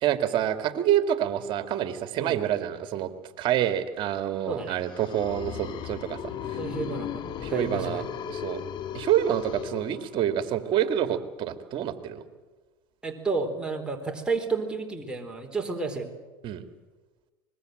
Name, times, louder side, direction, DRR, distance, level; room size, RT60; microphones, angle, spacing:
voice 1, 0.0-3.1 3.4-6.3 7.4-8.6 8.9-12.2 16.4-16.6, right 10 dB, 50° right, 9 dB, 2.3 m, -27 dB
voice 2, 4.5-4.8 6.5-8.0 13.0-16.1, right 4 dB, 10° right, 1 dB, 4.1 m, -31 dB
sound 1, 4.6-10.5, left 8 dB, 50° left, 2.0 m, -37 dB
25.0 x 21.0 x 7.9 m, 1.3 s
supercardioid pair, 100°, 10 cm